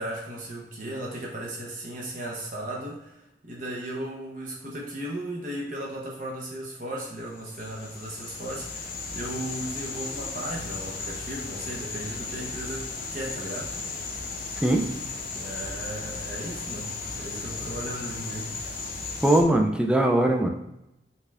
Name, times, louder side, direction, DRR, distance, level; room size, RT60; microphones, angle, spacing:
voice 1, 0.0-13.7 15.3-18.6, right 1 dB, 45° right, -3 dB, 0.9 m, -36 dB
sound 1, 7.3-19.4, left 4 dB, 50° left, 0.6 m, -35 dB
voice 2, 19.2-20.5, right 1 dB, 5° right, 2 dB, 0.4 m, -21 dB
5.4 x 2.4 x 3.4 m, 0.88 s
head